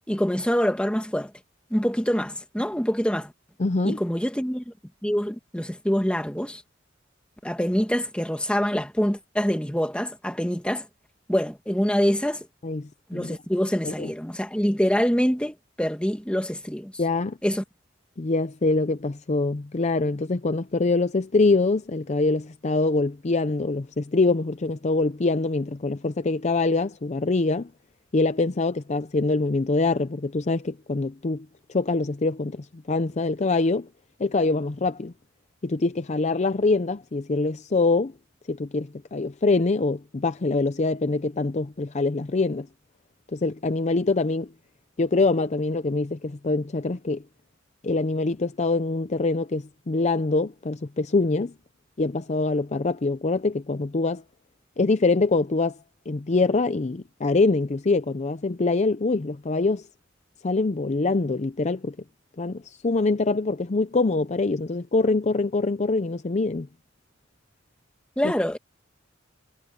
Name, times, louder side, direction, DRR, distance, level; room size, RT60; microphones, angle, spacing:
voice 1, 0.1-1.3 1.7-3.3 3.8-4.7 5.0-6.6 7.4-10.9 11.3-12.5 13.1-16.9 17.4-17.6 68.2-68.6, equal, 5° left, 2.0 m, -25 dB
voice 2, 3.6-4.0 12.6-13.4 13.8-14.1 17.0-17.4 18.2-27.7 28.1-33.9 34.2-35.1 35.6-38.1 38.5-42.7 43.3-44.5 45.0-47.2 47.8-51.5 52.0-54.2 54.8-55.8 56.1-59.9 60.4-62.0 62.4-66.7 68.2-68.3, left 3 dB, 35° left, 0.5 m, -24 dB
head